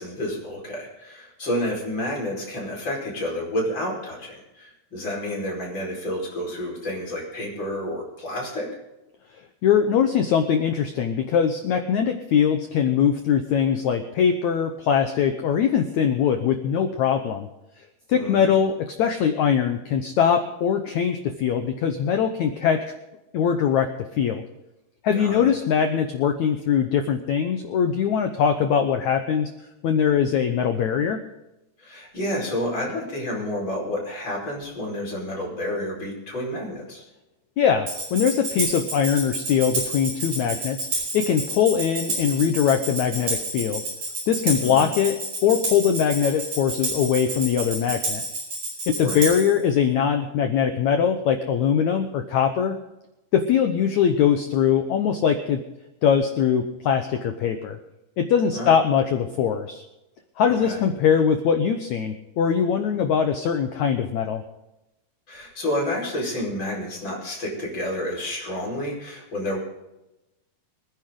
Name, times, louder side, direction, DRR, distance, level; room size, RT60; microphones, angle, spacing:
voice 1, 0.0-8.7 18.1-18.6 25.1-25.5 31.8-37.0 44.6-44.9 48.9-49.3 58.5-58.7 60.5-60.8 65.3-69.6, left 1 dB, 30° left, -2 dB, 5.5 m, -30 dB
voice 2, 9.6-17.5 18.1-22.8 23.3-23.9 24.1-24.4 25.0-29.5 29.8-31.2 37.6-40.8 41.1-43.8 44.3-48.2 48.9-52.7 53.3-55.6 56.0-57.8 58.2-59.8 60.4-64.4, left 7 dB, 75° left, 6 dB, 1.7 m, -22 dB
Tambourine, 37.9-49.6, right 2 dB, 40° right, 6.0 m, -30 dB
25.0 x 10.5 x 3.8 m, 0.96 s
omnidirectional pair, 4.7 m